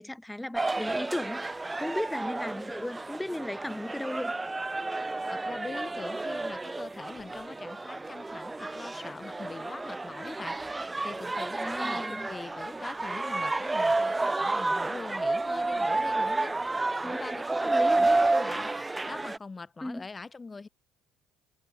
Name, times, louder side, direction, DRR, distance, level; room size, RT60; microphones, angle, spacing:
voice 1, 0.0-1.5 1.8-4.3 11.6-12.3 17.0-17.2 17.5-18.2 19.8-20.1, left 1 dB, 5° left, 2.4 m, -36 dB
sound 1, 0.6-19.4, right 2 dB, 15° right, 0.5 m, -30 dB
voice 2, 5.3-18.7 19.1-20.7, left 4 dB, 25° left, 3.5 m, -43 dB
supercardioid pair, 85°, 0 cm